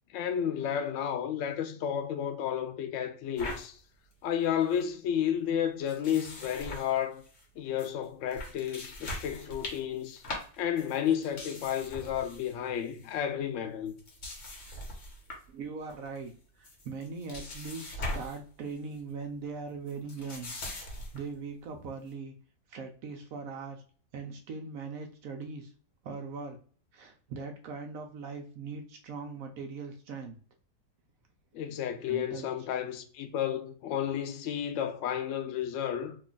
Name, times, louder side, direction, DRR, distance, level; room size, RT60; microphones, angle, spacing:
voice 1, 0.1-3.8 4.2-7.2 7.6-10.2 10.6-14.0 31.5-36.2, left 9 dB, 90° left, 0.6 m, -32 dB
sound 1, 3.4-3.7 4.1-4.2 4.4-4.8 5.9-7.4 7.8-7.9 8.3-12.5 12.8-13.1 13.9-15.5 15.9-16.3 16.6-18.4 18.7-19.0 19.9-21.3, left 1 dB, 50° left, 1.2 m, -41 dB
voice 2, 15.5-16.3 16.6-20.5 20.8-22.3 22.7-23.8 24.1-25.7 26.0-26.6 26.9-30.4 32.1-32.7, right 4 dB, 70° right, 0.9 m, -40 dB
3.0 x 2.3 x 3.9 m
omnidirectional pair, 1.9 m